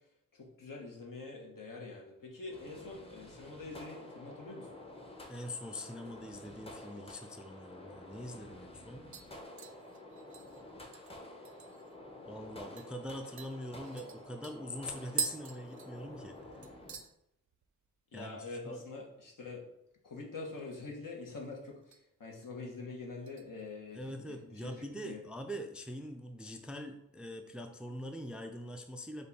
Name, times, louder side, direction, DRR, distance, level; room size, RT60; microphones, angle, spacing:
voice 1, 0.3-4.7 18.1-19.6 20.0-24.7 25.0-25.2, left 3 dB, 75° left, -1 dB, 1.1 m, -45 dB
sound 1, 2.5-17.0, left 1 dB, 15° left, 0.7 m, -50 dB
voice 2, 5.3-9.1 12.3-16.4 18.1-18.8 23.9-29.3, equal, 5° right, 6 dB, 0.3 m, -43 dB
sound 2, 8.0-8.1 8.5-8.8 9.1-12.0 12.3-12.4 12.8-12.9 13.4-16.4 16.6-17.1 17.5-17.9 18.1-18.2 20.3-21.0 21.3-22.0 22.4-22.7 23.3-24.2 24.5-24.6, right 6 dB, 60° right, 0.5 m, -44 dB
5.2 x 2.3 x 4.0 m, 0.79 s
wide cardioid pair, 95°, 33 cm